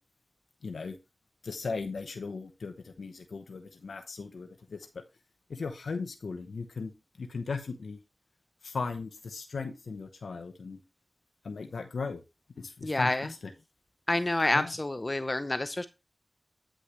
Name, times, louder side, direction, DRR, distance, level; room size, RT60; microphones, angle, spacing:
voice 1, 0.6-1.0 1.4-5.0 5.5-6.9 7.2-8.0 8.6-10.8 11.4-12.2 12.6-13.4 14.5-14.7, left 4 dB, 85° left, 7 dB, 0.9 m, -37 dB
voice 2, 12.8-13.3 14.1-15.9, left 2 dB, 35° left, 11 dB, 0.6 m, -28 dB
9.7 x 6.4 x 3.1 m, 0.25 s
cardioid pair, 50°, 0 cm